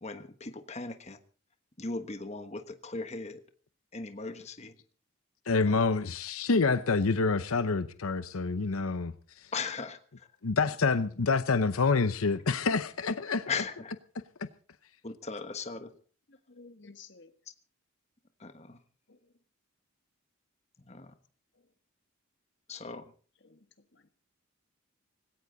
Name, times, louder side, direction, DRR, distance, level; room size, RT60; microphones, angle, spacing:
voice 1, 0.0-1.2 1.8-3.4 3.9-4.7 5.7-5.8 9.5-10.3 13.4-13.9 15.0-15.9 18.4-18.8 20.9-21.1 22.7-23.0, left 4 dB, 30° left, 1.3 m, -38 dB
voice 2, 5.5-9.5 10.4-13.6 14.4-14.5, left 4 dB, 85° left, 0.8 m, -27 dB
voice 3, 16.3-17.3 19.1-19.3 21.5-21.7 23.4-24.1, left 4 dB, 55° left, 1.6 m, -55 dB
18.5 x 17.0 x 4.0 m
head